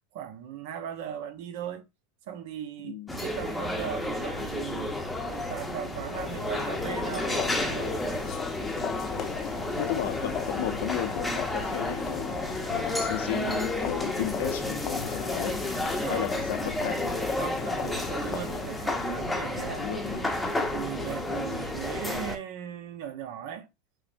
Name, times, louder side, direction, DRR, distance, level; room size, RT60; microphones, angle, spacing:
voice 1, 0.1-1.9 2.3-5.0 5.3-8.0 16.0-16.4 17.4-20.3 20.7-23.7, right 9 dB, 65° right, 0.7 m, -38 dB
voice 2, 2.8-3.5 9.0-9.2 9.8-12.4 12.7-15.6 16.1-17.0 19.5-20.2, left 11 dB, 75° left, 0.7 m, -34 dB
sound 1, 3.1-22.4, left 1 dB, 5° left, 0.8 m, -32 dB
sound 2, 6.1-18.7, left 8 dB, 40° left, 0.6 m, -37 dB
5.9 x 2.1 x 2.5 m
hypercardioid pair, 115°, 0 cm